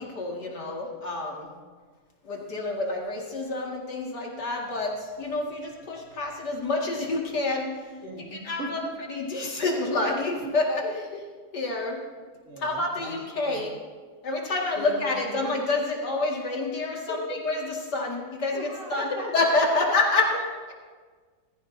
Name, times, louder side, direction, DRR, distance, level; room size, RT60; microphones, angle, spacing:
voice 1, 0.0-1.5 2.2-7.7 8.4-8.8 9.1-10.8 11.5-12.0 12.6-13.7 14.2-20.3, left 2 dB, 70° left, -2 dB, 2.7 m, -28 dB
voice 2, 8.0-8.9 10.4-10.6 10.8-11.2 12.4-13.2 13.4-13.6 14.7-15.6 17.1-17.4 18.5-19.3, equal, 50° right, -3 dB, 2.9 m, -37 dB
19.5 x 15.5 x 2.8 m, 1.5 s
omnidirectional pair, 1.8 m